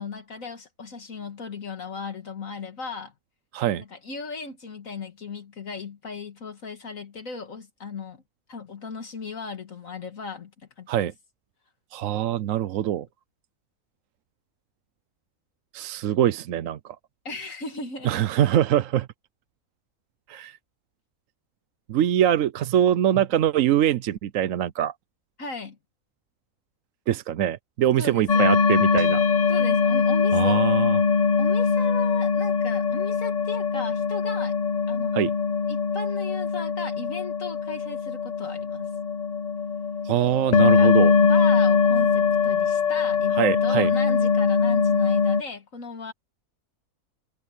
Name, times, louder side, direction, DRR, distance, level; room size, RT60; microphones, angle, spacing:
voice 1, 0.0-3.1 3.8-8.2 8.5-10.5 10.8-10.9 17.3-18.2 25.4-25.8 28.0-28.5 29.5-30.7 31.1-34.6 34.9-35.3 35.7-38.9 40.6-46.1, left 4 dB, 65° left, 2.1 m, -37 dB
voice 2, 3.5-3.8 10.9-11.1 11.9-13.1 15.7-17.0 18.0-19.1 20.3-20.6 21.9-24.9 27.1-29.2 30.3-31.0 35.1-35.3 40.0-41.1 43.4-43.9, right 11 dB, 70° right, 1.0 m, -23 dB
sound 1, 28.3-45.4, left 5 dB, 40° left, 0.7 m, -22 dB
omnidirectional pair, 1.5 m